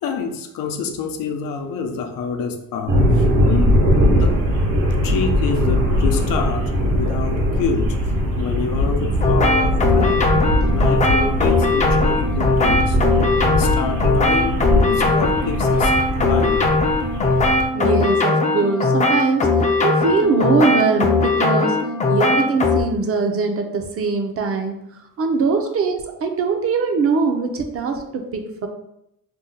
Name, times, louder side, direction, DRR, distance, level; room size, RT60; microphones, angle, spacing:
voice 1, 0.0-4.7 5.0-13.0 13.5-15.9 16.2-16.7 28.0-28.1, left 5 dB, 90° left, 5 dB, 0.5 m, -27 dB
sound 1, 2.9-17.7, equal, 75° right, 0.9 m, -20 dB
sound 2, 9.2-22.8, left 3 dB, 25° left, 0.3 m, -19 dB
voice 2, 17.7-19.5 19.8-21.8 22.1-24.8 25.2-28.7, right 4 dB, 45° right, 4 dB, 0.5 m, -21 dB
2.7 x 2.1 x 3.8 m, 0.79 s
cardioid pair, 130°, 33 cm